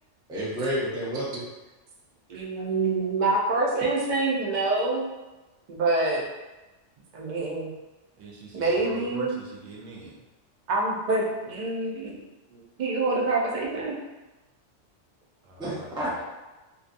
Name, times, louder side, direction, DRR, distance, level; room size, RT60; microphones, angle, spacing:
voice 1, 0.3-1.4 15.6-16.2, equal, 5° right, -8 dB, 0.4 m, -30 dB
voice 2, 2.3-5.1 5.7-6.2 7.1-7.7 8.5-9.4 10.7-12.2 12.5-13.9, right 2 dB, 50° right, -4 dB, 0.6 m, -26 dB
voice 3, 8.2-10.1 15.4-16.1, right 2 dB, 80° right, -3 dB, 0.9 m, -43 dB
2.5 x 2.3 x 2.5 m, 1.1 s
omnidirectional pair, 1.3 m